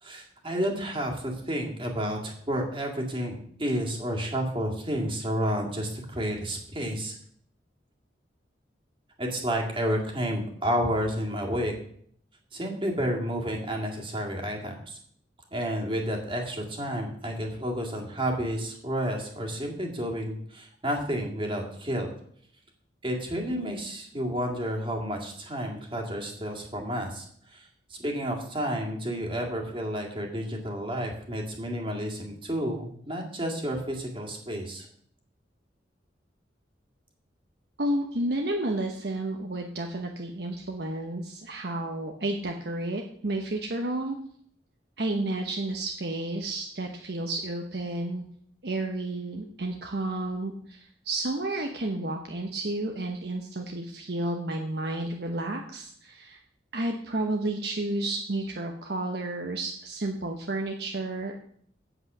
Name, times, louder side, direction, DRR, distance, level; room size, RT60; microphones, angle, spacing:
voice 1, 0.0-7.1 9.2-11.7 12.5-15.0 15.5-22.1 23.0-34.9, equal, 30° right, 0 dB, 2.1 m, -31 dB
voice 2, 37.8-44.2 45.0-48.2 48.6-56.4 56.7-61.4, right 2 dB, 65° right, 2 dB, 0.9 m, -31 dB
8.1 x 8.1 x 6.1 m, 0.62 s
head